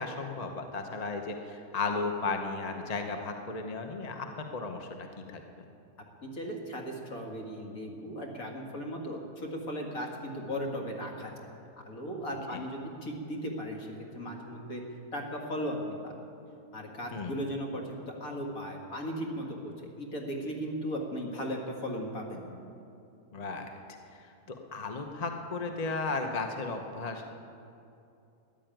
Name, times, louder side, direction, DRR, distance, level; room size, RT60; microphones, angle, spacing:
voice 1, 0.0-5.0 5.3-5.7 12.5-12.6 17.1-17.3 23.3-23.7 24.1-27.3, left 3 dB, 30° left, 4 dB, 0.9 m, -35 dB
voice 2, 6.2-11.3 11.9-14.8 15.1-16.1 16.7-22.5, equal, 60° left, 0 dB, 2.4 m, -37 dB
14.0 x 11.0 x 9.1 m, 2.7 s
omnidirectional pair, 1.7 m